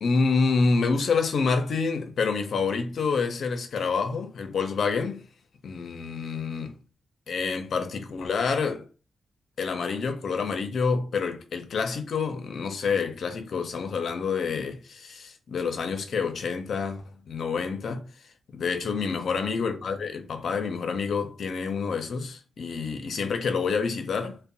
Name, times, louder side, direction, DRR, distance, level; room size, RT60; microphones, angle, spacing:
voice 1, 0.0-5.3 5.6-6.8 7.3-8.8 9.6-18.1 18.5-24.4, left 5 dB, 70° left, 0.5 m, -28 dB
2.5 x 2.1 x 2.6 m
cardioid pair, 70°, 0 cm